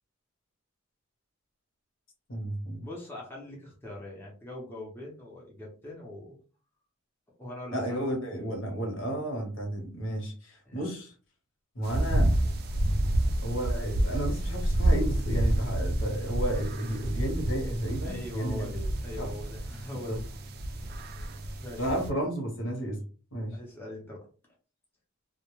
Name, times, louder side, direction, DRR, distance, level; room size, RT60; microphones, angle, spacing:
voice 1, 2.3-2.9 7.7-11.1 11.7-12.3 13.4-18.7 19.2-19.3 19.9-20.2 21.8-23.0 23.3-23.6, right 1 dB, 75° left, 1 dB, 1.0 m, -32 dB
voice 2, 2.8-6.4 7.4-8.0 10.7-10.8 18.0-20.2 21.6-21.8 23.5-24.3, left 1 dB, 10° left, -3 dB, 0.6 m, -42 dB
sound 1, 11.8-22.1, right 1 dB, 50° right, 0.4 m, -29 dB
sound 2, 15.0-21.8, equal, 45° left, 0.8 m, -46 dB
2.1 x 2.1 x 3.0 m, 0.37 s
head